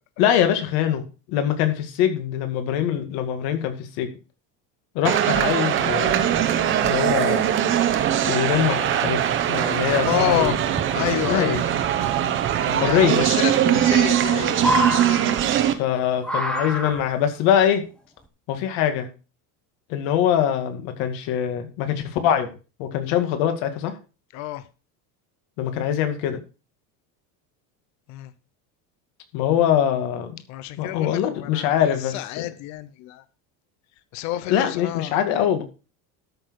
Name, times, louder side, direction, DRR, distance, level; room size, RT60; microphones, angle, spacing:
voice 1, 0.2-4.1 4.9-6.3 6.8-7.4 8.3-9.2 9.5-10.5 11.3-11.6 12.7-13.2 15.8-17.8 18.5-19.1 19.9-22.5 22.8-24.0 25.6-26.4 29.3-30.3 30.8-32.2 34.5-35.6, left 9 dB, 60° left, 7 dB, 2.1 m, -23 dB
sound 1, 5.0-15.7, right 10 dB, 30° right, 0.9 m, -21 dB
voice 2, 10.0-10.6 10.9-11.6 12.6-14.8 24.3-24.6 28.1-28.3 30.5-31.7 32.0-33.2 34.1-35.2, left 13 dB, 40° left, 14 dB, 0.8 m, -28 dB
sound 2, 10.3-10.9 12.4-12.5 13.8-14.3 14.5-15.8 16.2-17.3 18.2-18.3, equal, ahead, 1.0 m, -27 dB
13.0 x 6.4 x 4.7 m, 0.33 s
cardioid pair, 180°, 41 cm